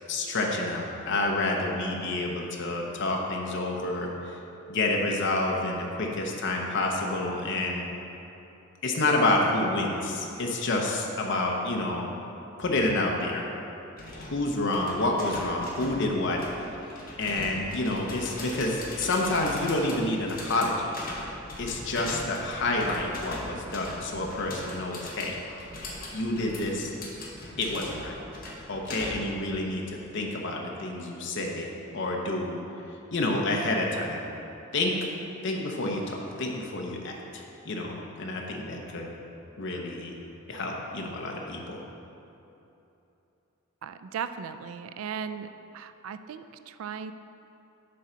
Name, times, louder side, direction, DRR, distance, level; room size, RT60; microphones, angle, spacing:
voice 1, 0.1-4.1 4.7-7.8 8.8-12.1 12.6-13.4 14.1-16.4 17.2-21.0 21.6-25.3 26.1-26.9 27.6-28.2 28.7-32.6 33.1-34.2 34.7-34.9 35.4-39.1 39.6-40.1 40.5-41.8, left 2 dB, 60° left, 0 dB, 0.8 m, -28 dB
sound 1, 14.0-29.4, left 1 dB, 45° left, 1.1 m, -41 dB
voice 2, 43.8-45.5 45.7-47.1, right 7 dB, 75° right, 10 dB, 0.3 m, -37 dB
7.6 x 3.8 x 5.6 m, 2.9 s
head